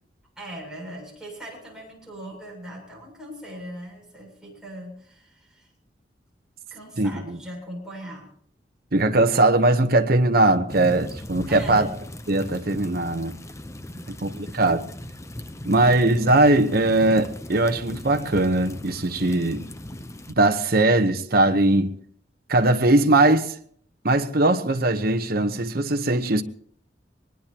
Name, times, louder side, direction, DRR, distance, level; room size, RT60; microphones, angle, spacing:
voice 1, 0.4-5.7 6.7-8.3 11.5-11.9 13.9-14.6, right 1 dB, 5° right, 7.6 m, -40 dB
voice 2, 8.9-11.9 12.3-13.4 14.1-14.8 15.6-19.6 20.4-21.9 22.5-23.5 24.0-26.4, right 2 dB, 55° right, 1.1 m, -20 dB
sound 1, 10.7-20.3, left 1 dB, 15° left, 0.7 m, -38 dB
22.5 x 20.0 x 3.0 m
head